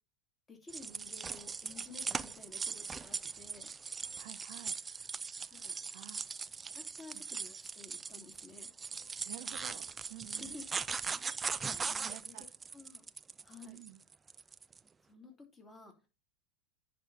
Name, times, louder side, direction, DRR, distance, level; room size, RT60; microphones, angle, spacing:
voice 1, 0.5-3.7 5.5-5.8 6.7-8.7 10.3-10.6 11.8-12.3 12.7-13.1 13.4-13.8 15.1-15.9, left 3 dB, 20° left, 2.9 m, -53 dB
sound 1, 0.7-14.8, right 5 dB, 20° right, 0.3 m, -40 dB
voice 2, 4.2-4.8 5.3-6.3 7.1-7.2 9.2-10.6 11.6-12.4 13.7-14.0, right 17 dB, 65° right, 0.6 m, -52 dB
10.0 x 4.2 x 4.1 m
hypercardioid pair, 115°, 0 cm